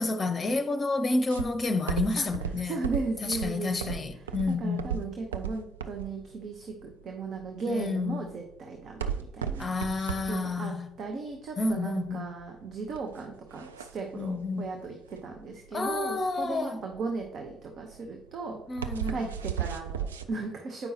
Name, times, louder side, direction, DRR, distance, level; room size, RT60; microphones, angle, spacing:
voice 1, 0.0-2.7 3.2-5.0 7.7-8.2 9.6-10.9 11.6-12.3 14.1-14.8 15.7-16.8 18.7-19.2, left 3 dB, 30° left, 0.7 m, -30 dB
sound 1, 1.3-20.3, right 8 dB, 80° right, 0.3 m, -36 dB
voice 2, 2.2-9.7 10.3-20.9, right 3 dB, 50° right, 0.8 m, -37 dB
8.1 x 5.4 x 2.8 m
figure-of-eight pair, 45°, 0 cm